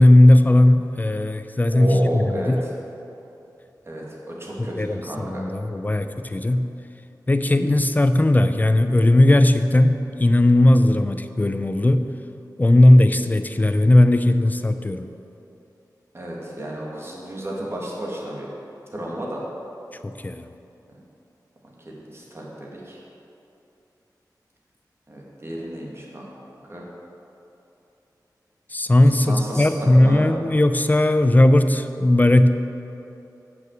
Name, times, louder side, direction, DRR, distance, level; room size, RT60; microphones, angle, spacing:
voice 1, 0.0-2.6 4.8-6.7 7.3-12.1 12.6-15.1 20.0-20.5 28.7-32.5, left 1 dB, 25° left, 9 dB, 0.5 m, -17 dB
voice 2, 1.7-2.7 3.9-5.4 16.1-18.5 18.9-19.4 21.9-23.0 25.1-26.3 26.7-26.8 29.1-30.2, right 1 dB, 35° right, -4 dB, 2.2 m, -32 dB
7.7 x 6.2 x 7.5 m, 2.9 s
wide cardioid pair, 65°, 7 cm